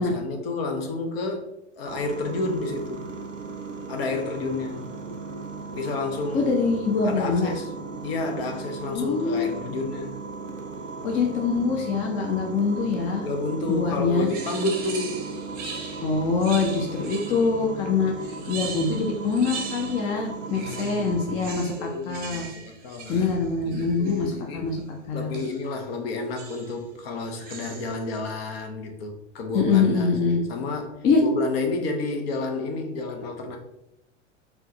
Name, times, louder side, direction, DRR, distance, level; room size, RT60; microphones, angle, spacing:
voice 1, 0.0-1.4 1.8-3.1 3.9-4.9 5.7-6.6 7.0-7.7 8.0-10.1 13.2-15.3 20.5-24.7 25.1-33.6, left 3 dB, 55° left, 3 dB, 0.8 m, -31 dB
sound 1, 1.9-21.5, right 4 dB, 90° right, 0.5 m, -37 dB
voice 2, 6.3-7.5 8.9-9.5 11.0-13.3 13.7-14.3 16.0-18.1 18.5-22.5 23.1-24.8 25.1-25.4 29.5-30.4 31.0-31.2, left 4 dB, 20° left, 2 dB, 0.4 m, -24 dB
sound 2, 14.3-17.6 18.2-20.2 20.5-24.3 25.3-25.7 26.4-26.8 27.3-28.1, right 5 dB, 25° right, 0.7 m, -40 dB
4.3 x 2.2 x 2.7 m, 0.85 s
figure-of-eight pair, 90°, 37 cm